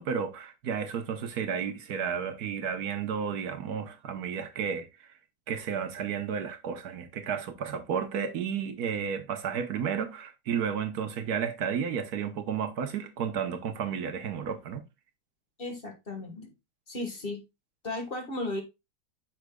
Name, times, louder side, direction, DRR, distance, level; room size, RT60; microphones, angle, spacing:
voice 1, 0.0-5.1 5.5-14.8, right 7 dB, 70° right, 1.4 m, -32 dB
voice 2, 15.6-16.5 16.9-17.4 17.8-18.6, left 2 dB, 35° left, 1.6 m, -35 dB
8.1 x 6.3 x 2.2 m
omnidirectional pair, 1.7 m